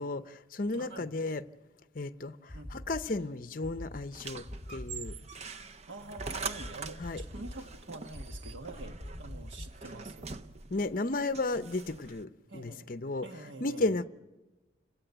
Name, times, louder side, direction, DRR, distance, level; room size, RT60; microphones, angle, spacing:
voice 1, 0.0-1.4 1.9-4.4 4.7-5.1 7.0-7.2 10.7-13.3 13.6-14.0, left 2 dB, 45° left, 0.7 m, -33 dB
voice 2, 0.7-1.1 2.5-2.7 5.9-10.3 12.5-12.9 13.2-13.9, right 2 dB, 85° right, 1.5 m, -46 dB
sound 1, 2.5-3.1 3.6-4.0 4.5-5.4 6.2-6.3 6.6-6.7 7.0-7.7 8.1-8.5 9.0-9.9, left 1 dB, 10° right, 6.5 m, -43 dB
sound 2, 4.1-12.2, right 4 dB, 35° right, 0.7 m, -43 dB
29.5 x 18.0 x 8.0 m
head